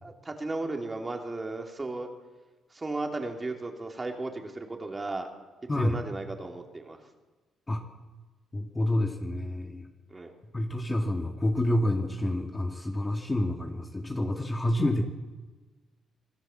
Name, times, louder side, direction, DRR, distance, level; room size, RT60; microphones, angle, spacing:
voice 1, 0.0-2.1 2.7-5.3 5.7-7.0 10.1-10.3, right 2 dB, 25° right, 3 dB, 3.6 m, -35 dB
voice 2, 8.5-9.9 10.5-15.0, left 1 dB, 20° left, 4 dB, 2.1 m, -28 dB
26.0 x 17.0 x 7.6 m, 1.3 s
cardioid pair, 90°, 0 cm